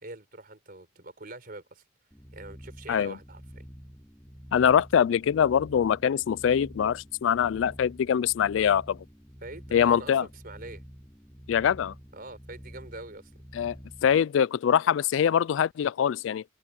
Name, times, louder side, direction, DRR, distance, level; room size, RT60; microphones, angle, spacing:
voice 1, 0.0-1.8 2.3-3.6 9.4-10.8 12.1-13.3, right 2 dB, 50° right, 4.4 m, -44 dB
sound 1, 2.1-14.2, equal, 10° left, 7.0 m, -48 dB
voice 2, 4.5-9.0 9.7-10.2 11.5-11.9 13.5-13.8 14.0-16.4, left 8 dB, 80° left, 0.3 m, -23 dB
head